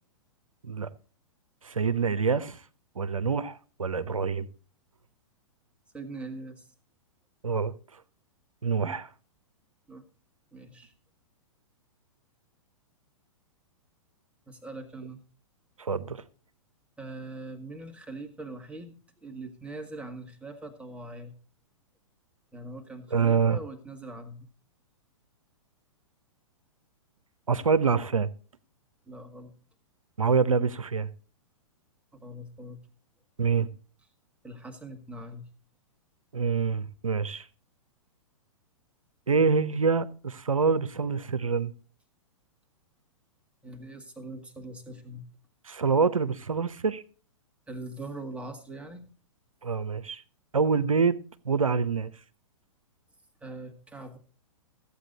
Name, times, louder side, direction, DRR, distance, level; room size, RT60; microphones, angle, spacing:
voice 1, 1.6-2.6 3.0-4.5 7.4-8.0 8.6-9.1 15.8-16.2 23.1-23.6 27.5-28.3 30.2-31.1 33.4-33.7 36.3-37.5 39.3-41.7 45.6-47.0 49.6-50.2 50.5-52.1, right 5 dB, 90° right, 0.8 m, -26 dB
voice 2, 5.9-6.7 8.8-9.0 9.9-10.0 10.5-10.9 14.5-15.2 17.0-21.3 22.5-24.5 29.1-29.5 32.1-32.8 34.4-35.4 43.6-45.2 47.7-49.0 53.4-54.2, right 2 dB, 5° right, 1.9 m, -42 dB
14.5 x 8.4 x 4.0 m
hypercardioid pair, 115°, 17 cm